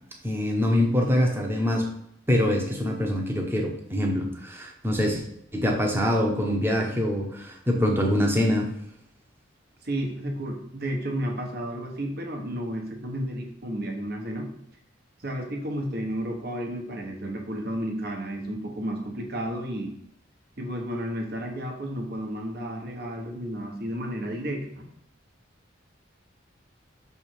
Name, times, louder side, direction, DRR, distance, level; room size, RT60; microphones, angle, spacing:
voice 1, 0.2-1.9 2.3-5.2 5.5-8.7, left 1 dB, 10° right, 0 dB, 0.9 m, -24 dB
voice 2, 9.8-14.5 15.2-19.9 20.6-24.9, equal, 50° right, 2 dB, 1.2 m, -32 dB
6.2 x 3.5 x 4.5 m, 0.73 s
head